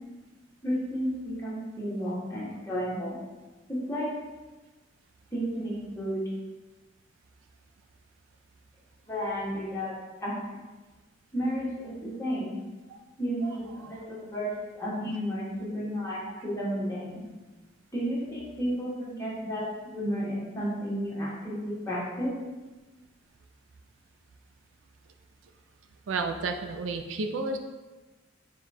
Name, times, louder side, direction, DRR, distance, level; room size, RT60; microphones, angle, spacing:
voice 1, 0.6-3.2 3.7-4.1 5.3-6.2 9.1-9.9 10.2-10.6 11.3-11.7 12.0-12.6 13.2-17.2 17.9-19.6 19.9-22.4, equal, 15° left, -7 dB, 1.2 m, -32 dB
voice 2, 26.1-27.6, right 3 dB, 85° right, 6 dB, 0.4 m, -31 dB
4.7 x 2.3 x 4.1 m, 1.2 s
head